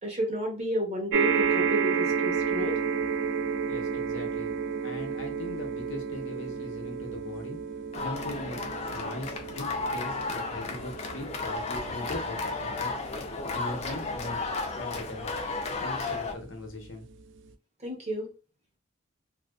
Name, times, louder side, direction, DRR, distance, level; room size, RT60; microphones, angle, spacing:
voice 1, 0.0-2.8 17.8-18.3, right 1 dB, 35° right, -1 dB, 0.8 m, -31 dB
sound 1, 1.1-15.7 16.4-16.5 16.8-16.9, right 6 dB, 65° right, 0.3 m, -32 dB
voice 2, 3.7-4.5 4.8-7.6 8.0-12.9 13.4-14.4 14.7-15.3 15.8-17.1, left 1 dB, 75° left, 2 dB, 0.7 m, -40 dB
sound 2, 7.9-16.3, left 3 dB, 35° left, 0.4 m, -33 dB
2.5 x 2.1 x 2.3 m, 0.34 s
head